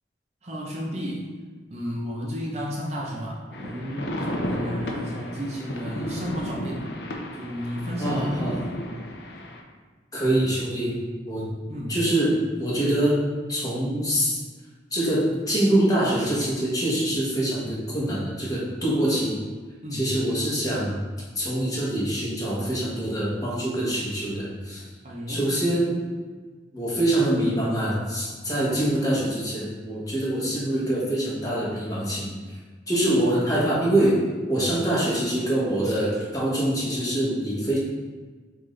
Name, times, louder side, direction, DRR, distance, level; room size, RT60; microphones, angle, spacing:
voice 1, 0.4-1.3 1.7-6.9 7.3-8.8 11.7-12.0 19.8-20.1 25.0-25.5, equal, 35° right, -4 dB, 0.6 m, -33 dB
sound 1, 3.5-9.6, left 1 dB, 65° left, 0.6 m, -33 dB
voice 2, 8.0-8.6 10.1-11.0 11.3-11.5 11.9-14.4 14.9-19.4 19.9-21.0 21.3-24.8 25.3-26.0 26.7-32.3 32.9-37.8, right 1 dB, 20° left, -6 dB, 1.1 m, -24 dB
5.8 x 2.6 x 3.2 m, 1.4 s
head